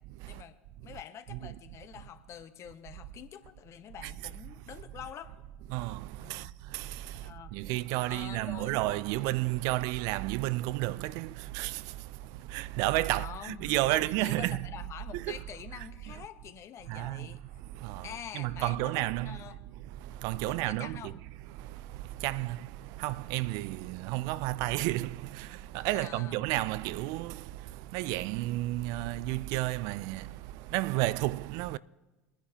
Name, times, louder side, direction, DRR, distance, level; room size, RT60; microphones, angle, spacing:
voice 1, 0.2-5.3 6.2-6.5 7.1-7.6 8.1-8.8 13.1-17.4 18.0-19.6 20.5-21.2 25.9-26.4, left 9 dB, 40° left, 1.1 m, -46 dB
voice 2, 5.7-14.7 15.1-15.4 15.8-16.2 16.9-21.2 21.5-31.8, right 17 dB, 55° right, 0.4 m, -32 dB
21.5 x 10.0 x 2.9 m
hypercardioid pair, 85°, 7 cm